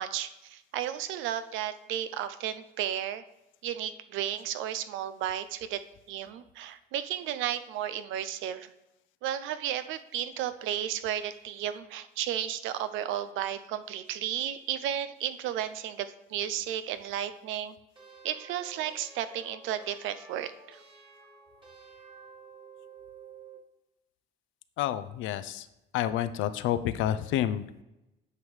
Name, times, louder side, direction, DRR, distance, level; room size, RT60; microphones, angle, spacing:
voice 1, 0.0-3.2 3.6-5.8 6.1-8.7 9.2-17.7 18.2-20.8, right 11 dB, 80° right, 12 dB, 0.5 m, -33 dB
sound 1, 18.0-23.7, right 5 dB, 25° right, 1.6 m, -51 dB
voice 2, 24.8-25.7 25.9-27.8, left 11 dB, 75° left, 13 dB, 0.5 m, -29 dB
9.5 x 5.4 x 3.3 m, 0.93 s
cardioid pair, 110°, 20 cm